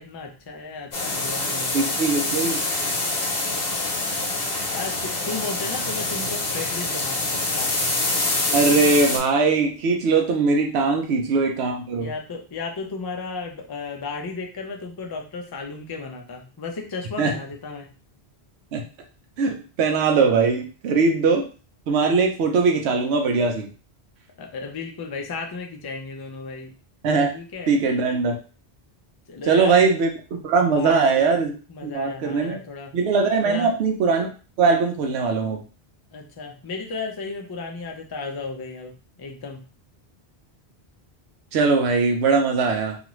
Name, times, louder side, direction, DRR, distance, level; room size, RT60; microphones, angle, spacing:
voice 1, 0.0-2.0 4.7-7.7 11.0-11.1 11.9-17.9 24.4-26.7 27.2-27.8 29.3-29.8 30.7-30.9 31.7-32.9 33.4-33.7 36.1-39.6, left 4 dB, 40° left, 2 dB, 0.3 m, -34 dB
sound 1, 0.9-9.2, left 2 dB, 80° left, 1.0 m, -25 dB
voice 2, 1.7-2.6 8.5-12.1 17.2-17.3 18.7-18.8 19.4-21.4 21.9-23.7 27.0-27.3 27.7-28.4 29.4-30.1 30.4-31.6 31.8-32.6 32.9-34.3 34.6-35.6 41.5-43.0, right 4 dB, 90° right, 3 dB, 0.8 m, -20 dB
2.6 x 2.4 x 3.0 m, 0.35 s
omnidirectional pair, 1.1 m